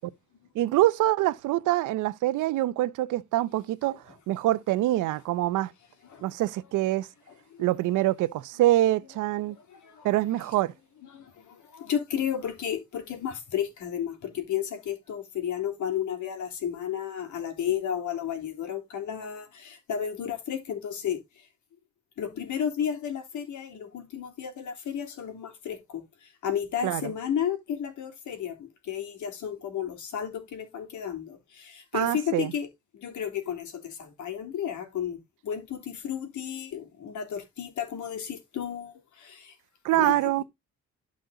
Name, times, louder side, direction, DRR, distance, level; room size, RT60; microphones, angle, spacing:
voice 1, 0.5-5.7 6.2-7.1 7.6-9.6 10.0-10.7 26.8-27.1 31.9-32.5 39.8-40.4, right 15 dB, 90° right, 0.8 m, -25 dB
voice 2, 9.7-10.1 11.1-21.2 22.2-32.7 32.9-35.2 35.4-39.5 39.9-40.3, left 9 dB, 75° left, 3.3 m, -33 dB
12.0 x 5.3 x 3.9 m
cardioid pair, 90°, 30 cm